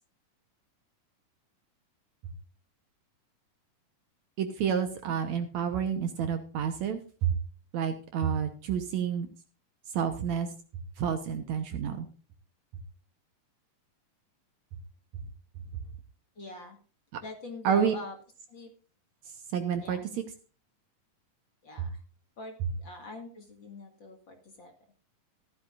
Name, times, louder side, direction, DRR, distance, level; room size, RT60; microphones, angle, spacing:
voice 1, 4.4-7.4 7.7-9.3 9.9-10.5 11.0-12.1 17.1-17.2 17.6-17.9 19.5-20.2 21.8-21.9, right 8 dB, 65° right, 8 dB, 2.1 m, -29 dB
voice 2, 16.4-16.8 17.2-18.1 18.5-18.7 19.8-20.0 21.6-22.0 22.4-24.7, left 2 dB, 40° left, 3 dB, 2.2 m, -43 dB
15.0 x 12.5 x 2.5 m, 0.37 s
omnidirectional pair, 3.9 m